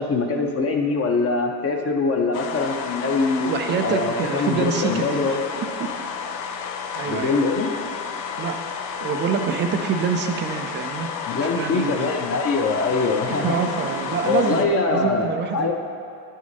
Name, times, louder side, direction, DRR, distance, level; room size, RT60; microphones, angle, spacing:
voice 1, 0.0-3.5 3.8-5.4 7.0-7.7 11.3-13.5 14.3-15.7, left 3 dB, 30° left, 2 dB, 0.7 m, -23 dB
sound 1, 2.3-14.7, left 6 dB, 80° left, 0.7 m, -31 dB
voice 2, 3.5-6.2 6.9-7.4 8.4-8.7 9.0-11.1 11.4-12.1 13.3-15.7, right 6 dB, 25° right, 6 dB, 0.3 m, -26 dB
10.0 x 6.3 x 2.7 m, 2.4 s
hypercardioid pair, 80°, 50 cm